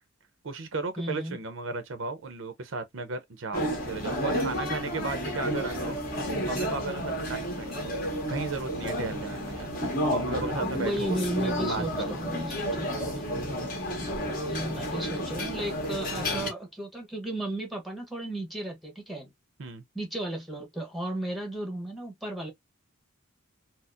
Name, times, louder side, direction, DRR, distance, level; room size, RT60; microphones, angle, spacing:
voice 1, 0.4-6.0 6.4-8.0 8.3-11.2 11.6-12.2 19.6-19.8, right 3 dB, 65° right, 0.6 m, -35 dB
voice 2, 1.0-1.4 10.6-13.2 14.3-19.3 19.9-22.5, right 1 dB, ahead, 1.0 m, -34 dB
sound 1, 3.5-16.5, equal, 45° left, 1.6 m, -31 dB
4.2 x 2.0 x 2.4 m
head